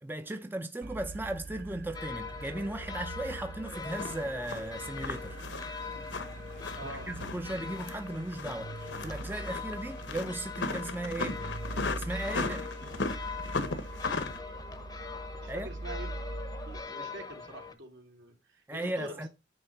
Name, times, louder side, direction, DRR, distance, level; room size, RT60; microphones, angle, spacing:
voice 1, 0.0-5.4 6.8-11.4 11.9-12.6 15.5-15.7 18.7-19.3, right 1 dB, 10° right, 0.5 m, -37 dB
sound 1, 0.8-16.8, right 2 dB, 55° right, 0.6 m, -43 dB
sound 2, 1.9-17.7, left 5 dB, 20° left, 0.8 m, -43 dB
sound 3, 3.6-14.4, left 3 dB, 75° left, 1.0 m, -37 dB
voice 2, 6.7-7.1 12.4-12.6 15.4-16.4 16.7-19.3, right 1 dB, 75° right, 2.8 m, -45 dB
9.4 x 3.3 x 6.7 m
head